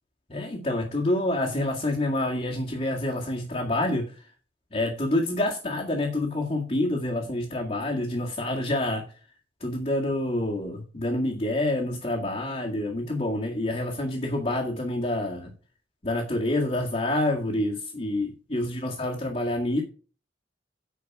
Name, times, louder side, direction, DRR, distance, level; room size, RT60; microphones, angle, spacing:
voice 1, 0.3-4.3 4.7-9.1 9.6-15.5 16.0-19.8, left 1 dB, 35° left, -4 dB, 2.0 m, -27 dB
9.6 x 5.8 x 5.9 m, 0.38 s
head